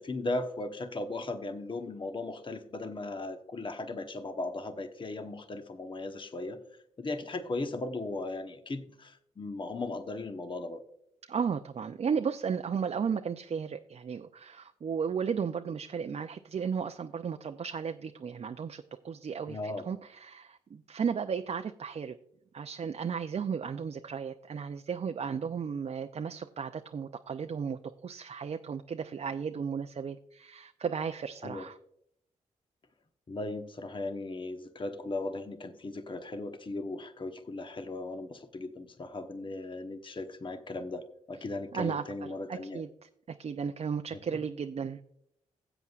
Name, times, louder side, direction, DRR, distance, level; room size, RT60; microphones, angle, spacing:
voice 1, 0.0-6.6 7.0-10.8 19.5-19.9 31.4-31.6 33.3-42.8, left 2 dB, 35° left, 7 dB, 1.0 m, -37 dB
voice 2, 11.3-22.2 22.5-31.8 41.7-45.0, right 6 dB, 50° right, 7 dB, 0.5 m, -34 dB
16.0 x 8.0 x 2.4 m, 0.73 s
supercardioid pair, 45°, 14 cm